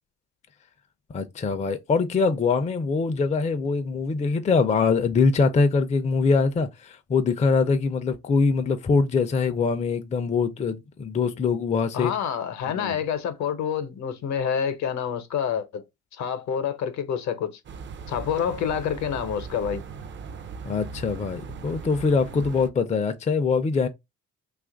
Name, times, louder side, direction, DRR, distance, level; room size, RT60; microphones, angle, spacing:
voice 1, 1.1-12.1 12.7-13.0 20.7-23.9, left 4 dB, 25° left, 0.4 m, -23 dB
voice 2, 11.9-15.8 16.1-17.5 18.1-19.8, left 8 dB, 65° left, 0.7 m, -27 dB
Evening small yard city atmosphere, 17.6-22.7, right 5 dB, 40° right, 0.4 m, -39 dB
2.8 x 2.4 x 3.7 m
cardioid pair, 90°, 30 cm